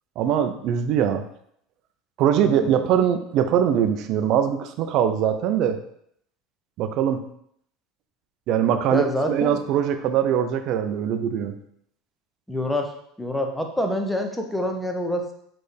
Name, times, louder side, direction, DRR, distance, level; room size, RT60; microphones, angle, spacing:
voice 1, 0.2-1.3 2.2-5.8 6.8-7.3 8.5-11.5, right 9 dB, 50° right, 8 dB, 0.4 m, -22 dB
voice 2, 2.4-2.7 8.9-9.6 12.5-12.9 13.2-15.3, left 1 dB, 5° left, 3 dB, 0.6 m, -26 dB
4.4 x 3.2 x 3.3 m, 0.70 s
supercardioid pair, 135°, 0 cm